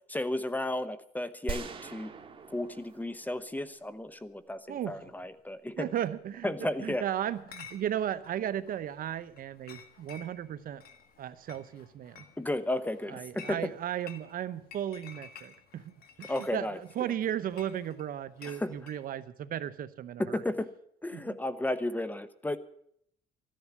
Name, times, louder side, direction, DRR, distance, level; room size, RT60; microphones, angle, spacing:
voice 1, 0.1-2.1 2.5-5.9 6.4-7.0 12.4-13.7 16.3-17.1 18.4-18.7 20.2-20.7 21.0-22.6, left 1 dB, 10° left, 14 dB, 0.9 m, -33 dB
sound 1, 1.5-4.4, right 5 dB, 30° right, 2.0 m, -42 dB
voice 2, 4.7-5.0 5.8-10.8 11.2-12.3 13.1-15.9 16.2-20.4 21.1-21.3, right 10 dB, 55° right, 13 dB, 1.0 m, -35 dB
Chatter / Chink clink, 7.3-19.0, left 7 dB, 65° left, 1.8 m, -53 dB
14.5 x 10.5 x 8.4 m, 0.69 s
cardioid pair, 110°, 17 cm